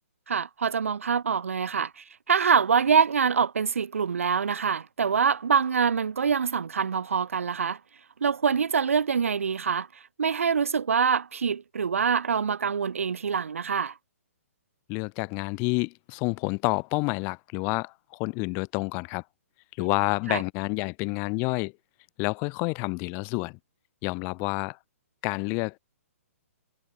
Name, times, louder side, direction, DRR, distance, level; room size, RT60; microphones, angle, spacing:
voice 1, 0.3-7.8 8.2-13.9 20.3-20.4, right 6 dB, 60° right, 1.5 m, -25 dB
voice 2, 14.9-19.2 19.8-21.7 22.2-23.6 24.0-24.8 25.2-25.8, left 32 dB, 25° left, 1.6 m, -29 dB
figure-of-eight pair, 125°, 8 cm